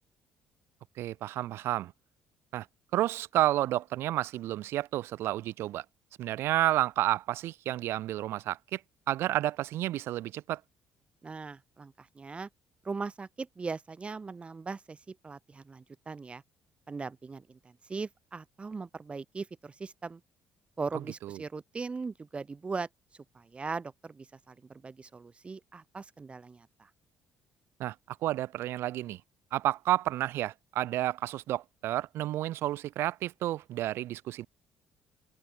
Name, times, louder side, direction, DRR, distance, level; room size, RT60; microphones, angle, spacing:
voice 1, 1.0-1.9 2.5-2.7 2.9-5.8 6.2-8.8 9.1-10.6 21.2-21.4 27.8-29.2 29.5-34.5, right 14 dB, 75° right, 1.1 m, -31 dB
voice 2, 11.2-12.5 12.8-16.4 16.9-20.2 20.8-22.9 23.3-26.9, right 4 dB, 25° right, 3.7 m, -39 dB
open air
cardioid pair, 95°, 4 cm